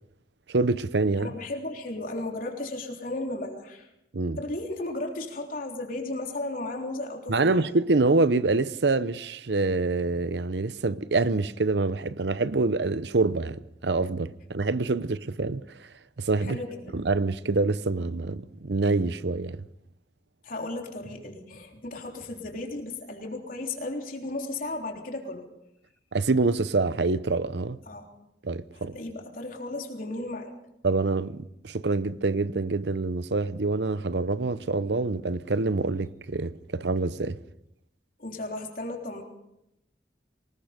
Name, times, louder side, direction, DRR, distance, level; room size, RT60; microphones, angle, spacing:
voice 1, 0.5-1.3 4.1-4.4 7.3-15.6 16.2-16.6 16.9-19.6 26.1-27.8 28.4-28.9 30.8-37.4, right 3 dB, 75° right, 0.8 m, -26 dB
voice 2, 1.2-3.9 4.4-7.7 16.4-17.0 20.4-25.5 27.9-28.1 28.8-30.5 38.2-39.2, left 2 dB, 55° left, 3.6 m, -35 dB
24.5 x 20.5 x 5.2 m
head